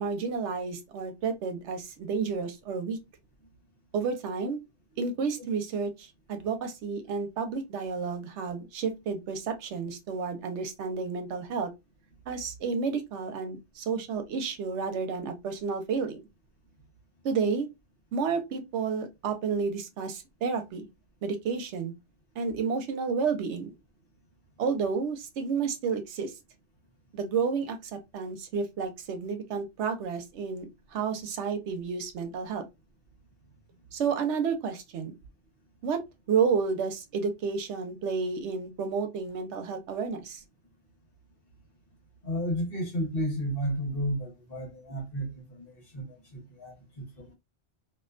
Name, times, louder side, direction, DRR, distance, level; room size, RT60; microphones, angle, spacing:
voice 1, 0.0-3.0 3.9-4.6 5.0-11.7 12.3-16.2 17.2-17.7 18.1-20.9 21.2-21.9 22.4-23.8 24.6-26.3 27.1-32.6 33.9-35.2 35.8-36.0 36.3-40.4, right 5 dB, 80° right, 0.9 m, -31 dB
voice 2, 42.2-47.3, equal, 55° left, 1.2 m, -33 dB
2.6 x 2.2 x 2.4 m
omnidirectional pair, 1.2 m